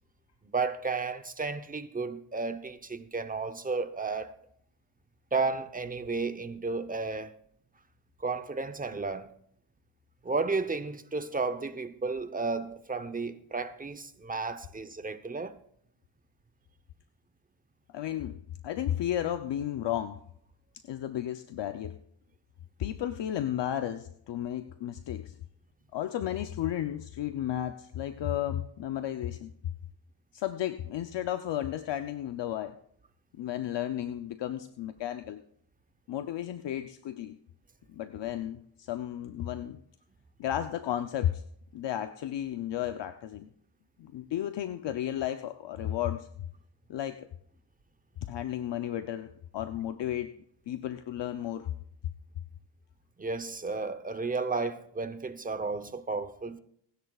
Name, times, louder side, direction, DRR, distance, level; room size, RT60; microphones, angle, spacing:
voice 1, 0.5-4.3 5.3-7.3 8.2-9.3 10.2-15.6 53.2-56.6, right 4 dB, 20° right, 0.8 m, -33 dB
voice 2, 17.9-18.4 18.6-20.2 20.9-22.0 22.8-25.3 25.9-29.5 30.3-32.8 33.4-35.4 36.1-37.4 37.9-39.8 40.4-41.4 41.7-43.5 44.0-46.3 46.9-47.3 48.2-50.3 50.7-51.7, left 11 dB, 60° left, 0.7 m, -33 dB
27.5 x 10.0 x 2.4 m
cardioid pair, 100°, 48 cm